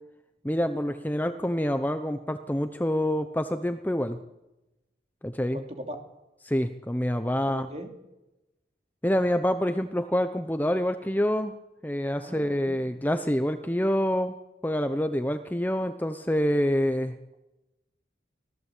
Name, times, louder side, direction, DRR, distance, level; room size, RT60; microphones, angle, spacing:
voice 1, 0.4-4.2 5.2-5.6 6.4-7.7 9.0-11.5 11.8-14.3 14.6-17.1, equal, 10° left, 9 dB, 0.8 m, -27 dB
voice 2, 5.5-6.0 7.5-7.9 12.2-13.0, equal, 35° right, 4 dB, 3.1 m, -40 dB
25.0 x 17.0 x 8.3 m, 0.98 s
head